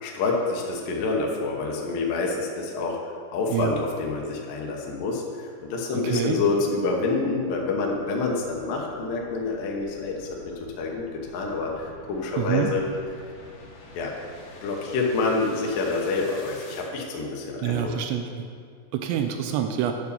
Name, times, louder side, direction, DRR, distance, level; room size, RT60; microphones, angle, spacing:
voice 1, 0.0-3.0 3.3-10.3 10.8-12.8 14.0-14.1 14.6-17.9, left 3 dB, 90° left, -1 dB, 1.9 m, -27 dB
sound 1, 5.5-16.9, left 2 dB, 65° left, 2.3 m, -48 dB
voice 2, 5.9-6.4 12.4-12.7 17.6-18.5 18.9-19.9, right 10 dB, 85° right, 5 dB, 2.6 m, -26 dB
9.5 x 4.8 x 6.8 m, 2.2 s
omnidirectional pair, 5.6 m